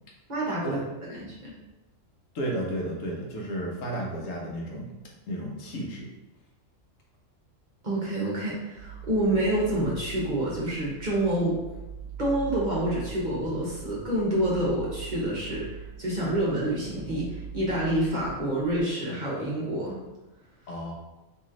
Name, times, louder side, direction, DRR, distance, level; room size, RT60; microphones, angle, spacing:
voice 1, 0.3-0.8 1.2-1.5 7.8-11.6 12.2-20.0, right 1 dB, 40° right, -6 dB, 1.0 m, -28 dB
voice 2, 2.3-4.9 5.3-6.1 20.7-20.9, right 1 dB, 75° left, -1 dB, 1.1 m, -32 dB
sound 1, 8.7-18.8, right 7 dB, 65° right, 0.9 m, -42 dB
3.0 x 3.0 x 3.7 m, 1.0 s
omnidirectional pair, 1.4 m